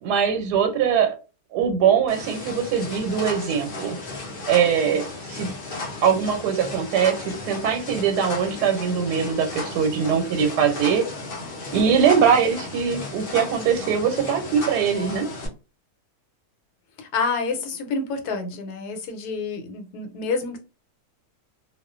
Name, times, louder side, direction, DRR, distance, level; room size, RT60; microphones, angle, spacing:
voice 1, 0.0-1.2 1.5-4.0 4.5-5.0 5.3-5.5 6.0-11.0 11.7-15.3, right 7 dB, 90° right, 1.2 m, -22 dB
sound 1, 2.1-15.5, left 3 dB, 50° left, 0.7 m, -35 dB
voice 2, 17.0-20.6, left 4 dB, 75° left, 1.1 m, -28 dB
2.4 x 2.4 x 2.3 m
omnidirectional pair, 1.7 m